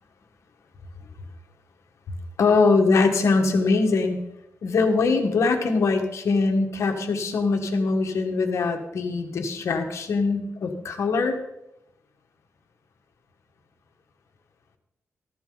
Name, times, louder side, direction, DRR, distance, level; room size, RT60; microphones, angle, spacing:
voice 1, 2.4-4.2 4.6-11.4, left 4 dB, 70° left, 5 dB, 1.6 m, -22 dB
14.0 x 11.0 x 4.0 m, 0.87 s
wide cardioid pair, 120°, 5 cm